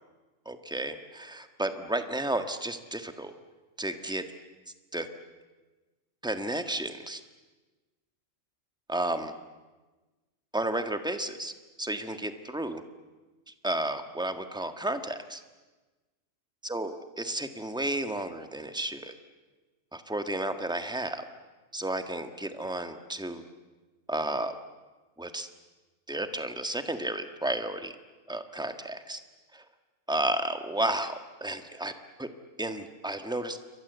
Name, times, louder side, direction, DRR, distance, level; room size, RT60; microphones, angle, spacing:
voice 1, 0.4-3.3 3.8-4.2 4.9-5.1 6.2-7.2 8.9-9.3 10.5-11.5 11.8-12.8 13.6-15.4 16.7-19.1 19.9-21.2 21.7-23.4 24.1-24.5 25.2-25.5 26.1-27.9 28.3-29.2 29.5-29.6 30.1-31.9 32.2-32.3 32.6-33.6, right 1 dB, 5° right, 7 dB, 1.6 m, -32 dB
29.0 x 24.0 x 8.2 m, 1.2 s
omnidirectional pair, 1.3 m